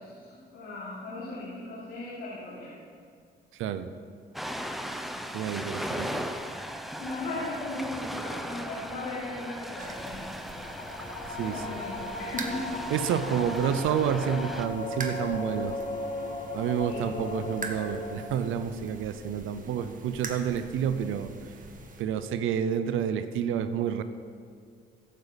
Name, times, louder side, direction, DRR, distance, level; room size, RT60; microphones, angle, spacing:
voice 1, 0.0-2.7 5.7-6.2 7.0-10.4 10.8-11.0 11.3-12.8 16.9-17.2 19.5-19.6, left 2 dB, 85° left, -8 dB, 3.3 m, -38 dB
voice 2, 3.6-3.9 5.3-6.2 11.4-11.6 12.9-15.7 16.5-21.3 22.0-24.0, right 8 dB, 85° right, 11 dB, 0.7 m, -29 dB
Ocean, 4.3-14.7, equal, ahead, 0.9 m, -38 dB
sound 1, 9.8-22.0, right 3 dB, 40° right, 1.6 m, -44 dB
sound 2, 10.4-18.6, left 2 dB, 50° left, 3.2 m, -37 dB
15.0 x 12.0 x 4.1 m, 2.2 s
cardioid pair, 90°, 20 cm